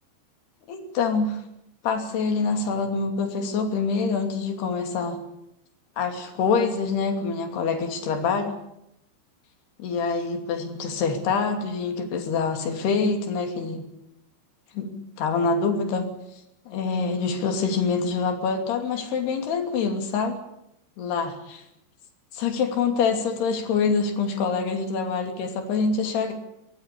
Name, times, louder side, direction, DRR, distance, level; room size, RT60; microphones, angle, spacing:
voice 1, 0.7-1.4 1.8-5.2 6.0-8.6 9.8-13.9 14.7-16.1 16.7-20.4 21.0-21.6 22.3-26.3, left 5 dB, 65° left, 4 dB, 4.7 m, -25 dB
23.0 x 19.5 x 8.6 m, 0.81 s
omnidirectional pair, 5.2 m